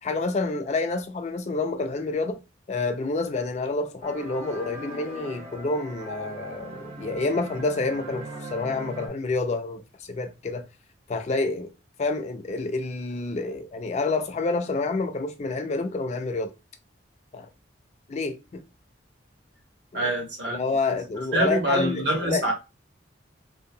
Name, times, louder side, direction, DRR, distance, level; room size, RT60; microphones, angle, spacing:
voice 1, 0.0-2.4 2.7-10.7 11.1-11.7 12.0-16.5 17.3-17.5 18.1-18.6 19.9-20.1 20.5-22.5, left 3 dB, 35° left, 0.3 m, -28 dB
sound 1, 4.0-9.1, right 1 dB, 30° right, 0.6 m, -39 dB
voice 2, 19.9-21.0 21.3-22.5, right 1 dB, 65° right, 1.0 m, -26 dB
2.7 x 2.1 x 2.6 m
head